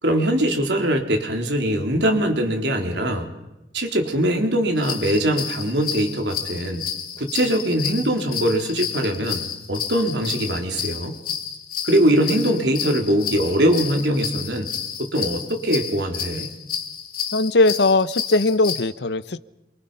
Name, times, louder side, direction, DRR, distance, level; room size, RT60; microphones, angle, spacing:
voice 1, 0.0-3.3 3.7-6.9 7.2-9.4 9.7-11.2 11.8-14.7 15.0-16.5, right 1 dB, 75° right, 3 dB, 3.7 m, -22 dB
sound 1, 4.8-18.8, left 8 dB, 50° left, 2.5 m, -31 dB
voice 2, 17.3-19.4, left 2 dB, 70° left, 16 dB, 0.8 m, -19 dB
27.5 x 24.0 x 5.6 m, 0.98 s
head